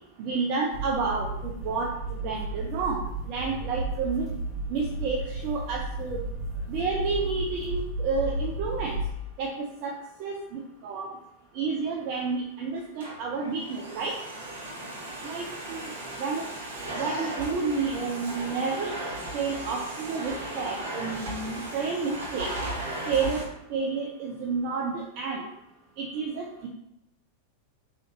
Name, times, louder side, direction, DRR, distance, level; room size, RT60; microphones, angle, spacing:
voice 1, 0.2-3.0 3.3-4.3 4.7-6.2 6.7-9.0 9.4-11.1 11.5-14.1 15.2-15.9 16.2-16.4 16.9-18.9 19.3-22.5 23.1-23.4 23.7-25.5 26.0-26.7, right 4 dB, 45° right, -1 dB, 0.5 m, -30 dB
sound 1, 0.7-9.1, right 2 dB, 20° right, 1.4 m, -33 dB
Domestic sounds home sounds, 12.8-23.4, right 1 dB, 65° right, 0.9 m, -36 dB
3.7 x 3.1 x 2.9 m, 0.83 s
figure-of-eight pair, 90°, 0 cm